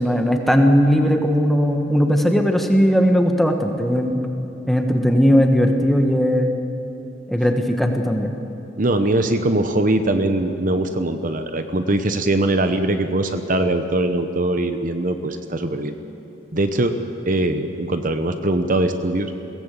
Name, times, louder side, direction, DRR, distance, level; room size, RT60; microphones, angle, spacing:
voice 1, 0.0-4.2 4.7-6.5 7.3-8.3, equal, ahead, 4 dB, 1.4 m, -18 dB
voice 2, 8.8-15.9 16.5-16.9 17.3-19.3, right 1 dB, 45° right, 8 dB, 1.0 m, -21 dB
22.5 x 17.0 x 8.3 m, 3.0 s
head